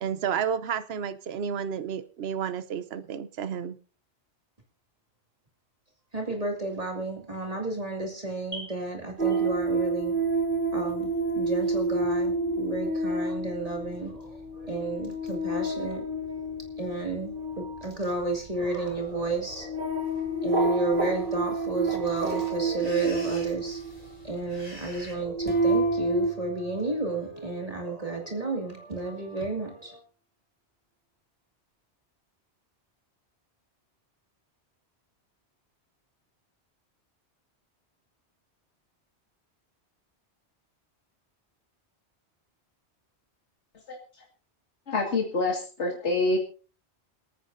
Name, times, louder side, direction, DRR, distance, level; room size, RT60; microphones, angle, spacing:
voice 1, 0.0-3.8, right 7 dB, 65° right, 13 dB, 1.0 m, -31 dB
voice 2, 6.1-10.1 10.7-11.1 11.4-16.0 16.8-20.1 20.4-30.0, right 2 dB, 35° right, 1 dB, 2.4 m, -32 dB
sound 1, 9.2-24.3 25.0-26.3, right 2 dB, 50° right, 2.0 m, -29 dB
sound 2, 18.3-18.4 18.9-19.3 20.0-20.2 20.5-20.6 20.8-25.1, left 1 dB, 40° left, 4.3 m, -47 dB
sound 3, 25.5-28.2, right 2 dB, 10° left, 2.0 m, -43 dB
voice 3, 44.9-46.4, left 2 dB, 85° left, 0 dB, 2.3 m, -26 dB
27.5 x 9.6 x 2.6 m, 0.38 s
omnidirectional pair, 1.2 m